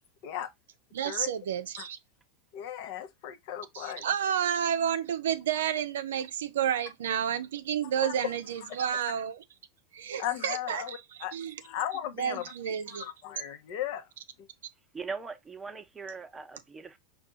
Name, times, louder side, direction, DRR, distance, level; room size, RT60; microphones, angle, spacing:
voice 1, 0.9-2.0 3.7-9.4 9.9-11.5 12.2-13.1, right 9 dB, 75° right, 0.5 m, -31 dB
voice 2, 2.5-4.1 8.0-8.1 8.6-8.9 10.2-11.3 11.6-12.5 12.9-14.1 14.4-14.5, left 11 dB, 60° left, 0.8 m, -36 dB
voice 3, 14.9-17.0, right 4 dB, 15° right, 0.8 m, -40 dB
5.3 x 2.3 x 3.9 m
hypercardioid pair, 90°, 0 cm